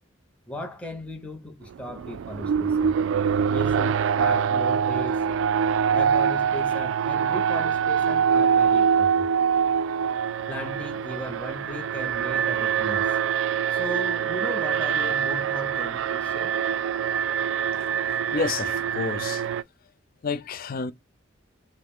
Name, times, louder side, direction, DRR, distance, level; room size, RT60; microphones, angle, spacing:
voice 1, 0.5-3.0 3.5-5.2 5.9-9.3 10.5-13.2 13.7-16.5, left 1 dB, 5° left, 0.6 m, -37 dB
Alarm, 1.7-19.6, right 7 dB, 85° right, 0.3 m, -24 dB
voice 2, 18.3-19.4 20.2-20.9, left 4 dB, 50° left, 0.4 m, -29 dB
5.5 x 2.1 x 3.5 m
head